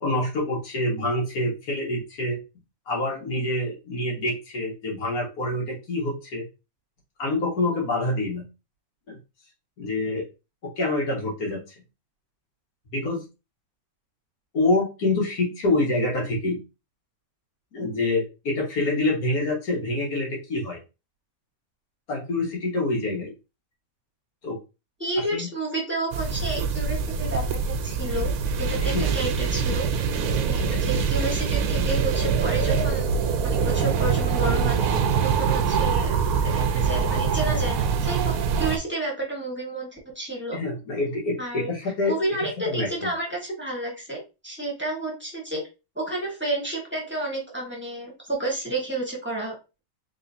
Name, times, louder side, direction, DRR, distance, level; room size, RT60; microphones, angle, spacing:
voice 1, 0.0-2.4 2.9-6.5 7.2-8.4 9.1-9.2 9.8-10.3 10.8-11.6 12.9-13.2 14.5-16.6 17.7-20.8 22.1-23.3 24.4-24.6 25.3-25.5 28.8-29.1 40.5-43.1, left 2 dB, 80° left, -2 dB, 2.0 m, -26 dB
voice 2, 25.0-28.3 28.6-29.9 30.4-33.1 33.4-34.8 35.2-36.1 36.4-40.6 41.4-45.6 45.9-49.8, right 2 dB, 10° right, -2 dB, 1.3 m, -31 dB
sound 1, 26.1-38.8, right 6 dB, 85° right, 1.1 m, -24 dB
3.8 x 3.7 x 2.7 m, 0.28 s
omnidirectional pair, 1.6 m